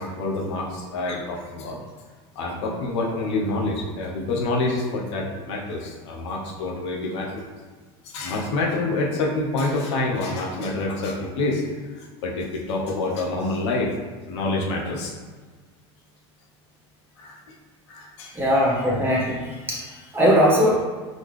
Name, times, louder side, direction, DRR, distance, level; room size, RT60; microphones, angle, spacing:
voice 1, 0.0-1.8 2.3-7.4 8.0-13.9 14.3-15.1 17.2-17.4 17.9-18.3, left 2 dB, 90° left, -2 dB, 1.0 m, -27 dB
voice 2, 18.3-20.8, equal, 15° right, -5 dB, 1.4 m, -20 dB
4.1 x 3.8 x 3.3 m, 1.4 s
supercardioid pair, 120°, 14 cm